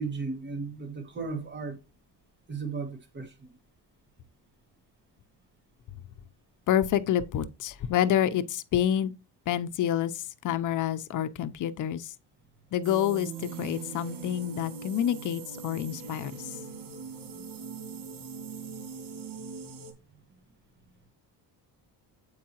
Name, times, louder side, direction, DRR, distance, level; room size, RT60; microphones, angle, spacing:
voice 1, 0.0-1.8 2.5-3.5 17.3-17.5 17.9-18.0, right 4 dB, 25° right, 1.6 m, -36 dB
voice 2, 6.7-9.1 9.5-12.1 12.7-16.6, left 10 dB, 50° left, 0.6 m, -28 dB
sound 1, 12.8-19.9, right 5 dB, 85° right, 2.0 m, -41 dB
7.4 x 4.7 x 2.9 m
cardioid pair, 115°, 41 cm